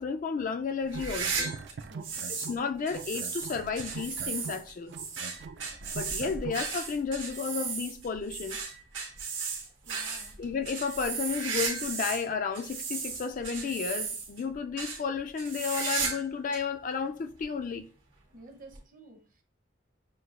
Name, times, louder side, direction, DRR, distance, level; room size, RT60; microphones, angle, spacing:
voice 1, 0.0-1.5 2.4-5.0 5.9-8.6 10.4-17.9, left 5 dB, 45° left, 0.3 m, -32 dB
sound 1, 0.8-2.6 2.9-6.7, right 5 dB, 60° right, 0.3 m, -42 dB
sound 2, 0.9-2.6 2.9-12.2 12.5-14.4 14.8-15.0 15.4-16.3 16.5-16.6 17.4-17.5 18.7-18.8, right 5 dB, 85° right, 1.4 m, -35 dB
voice 2, 1.9-2.3 9.9-10.4 18.3-19.4, right 2 dB, 45° right, 0.7 m, -52 dB
6.4 x 2.3 x 2.4 m
head